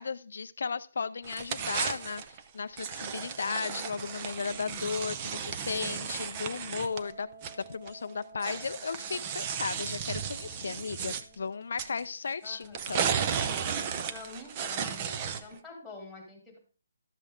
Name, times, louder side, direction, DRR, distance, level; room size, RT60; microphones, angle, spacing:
voice 1, 0.0-7.3 7.7-13.0, left 5 dB, 65° left, 11 dB, 0.4 m, -35 dB
sound 1, 1.2-2.4 2.8-7.9 8.4-11.2 11.8-12.0 12.7-15.6, right 7 dB, 25° right, 0.5 m, -34 dB
Wind instrument woodwind instrument, 6.7-12.2, right 3 dB, 45° right, 2.6 m, -54 dB
voice 2, 12.4-12.9 14.0-16.6, left 2 dB, ahead, -2 dB, 2.3 m, -47 dB
11.5 x 7.5 x 3.6 m, 0.37 s
hypercardioid pair, 170°, 0 cm